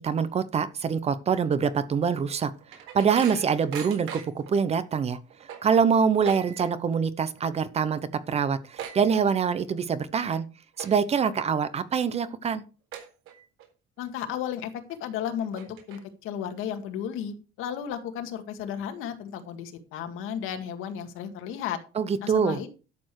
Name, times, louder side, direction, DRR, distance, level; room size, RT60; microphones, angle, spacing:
voice 1, 0.0-2.5 2.9-5.2 5.6-8.0 8.3-10.5 10.8-12.6 22.0-22.6, right 6 dB, 30° right, 15 dB, 0.8 m, -25 dB
sound 1, 2.3-4.5 4.9-5.0 5.3-7.0 7.3-7.6 7.9-8.0 8.3-9.7 10.1-10.4 10.7-11.3 11.8-11.9 12.4-12.5 12.9-13.6 14.1-14.2 14.9-15.0 15.4-16.3, right 9 dB, 90° right, 4.0 m, -41 dB
voice 2, 14.0-21.8 22.2-22.7, left 9 dB, 75° left, 7 dB, 2.0 m, -34 dB
12.0 x 7.0 x 4.7 m, 0.34 s
cardioid pair, 165°, 21 cm